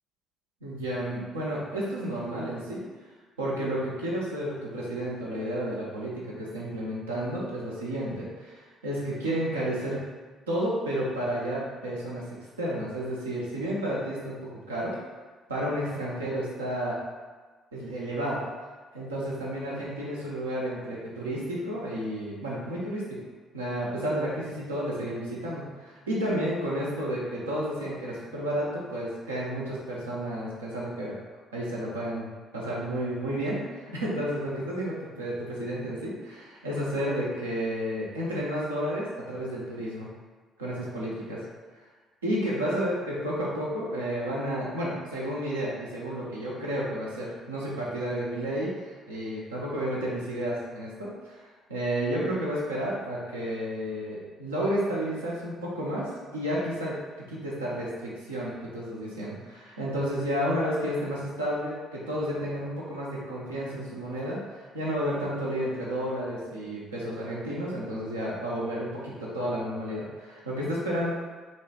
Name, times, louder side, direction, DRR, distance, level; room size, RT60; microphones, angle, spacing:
voice 1, 0.6-2.8 3.4-10.1 10.5-12.2 12.6-15.0 15.5-17.0 17.7-18.4 18.9-23.2 23.5-31.2 31.5-40.1 40.6-41.4 42.2-71.1, equal, 85° right, -6 dB, 0.5 m, -31 dB
3.0 x 2.0 x 2.8 m, 1.4 s
figure-of-eight pair, 45°, 0 cm